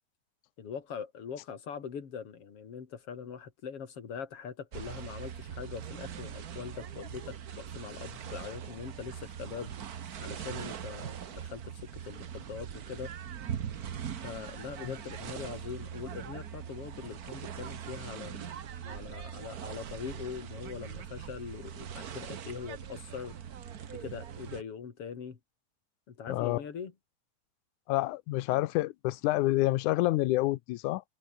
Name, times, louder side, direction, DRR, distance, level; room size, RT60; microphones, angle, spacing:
voice 1, 0.6-9.7 10.2-13.1 14.2-18.5 18.9-23.3 23.9-25.4 26.1-26.9, left 7 dB, 50° left, 3.5 m, -42 dB
sound 1, 4.7-24.6, right 8 dB, 80° right, 0.8 m, -41 dB
voice 2, 26.3-26.6 27.9-31.0, left 18 dB, 85° left, 2.2 m, -28 dB
omnidirectional pair, 3.4 m